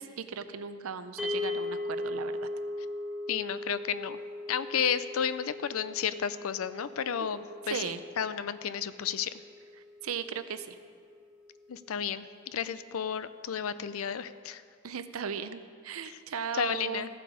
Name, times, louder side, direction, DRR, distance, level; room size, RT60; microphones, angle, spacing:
voice 1, 0.0-2.5 7.5-8.0 10.0-10.8 14.8-17.1, right 6 dB, 80° right, 11 dB, 0.6 m, -37 dB
sound 1, 1.2-11.5, left 2 dB, 5° right, 1.0 m, -39 dB
voice 2, 3.3-4.2 4.5-7.9 8.2-9.4 11.7-14.6 16.1-16.2 16.5-17.1, left 8 dB, 80° left, 14 dB, 0.5 m, -32 dB
15.0 x 7.7 x 5.0 m, 2.2 s
head